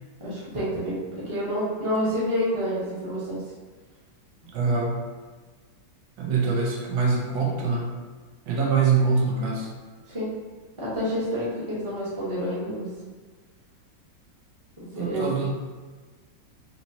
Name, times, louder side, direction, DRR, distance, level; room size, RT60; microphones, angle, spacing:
voice 1, 0.2-0.9 1.2-3.4 10.1-10.3 10.8-12.9 14.9-15.3, equal, 20° right, -8 dB, 0.8 m, -28 dB
voice 2, 4.5-5.0 6.2-7.9 8.4-9.7 14.9-15.5, right 4 dB, 85° right, -1 dB, 1.5 m, -24 dB
4.0 x 3.0 x 2.7 m, 1.4 s
omnidirectional pair, 2.1 m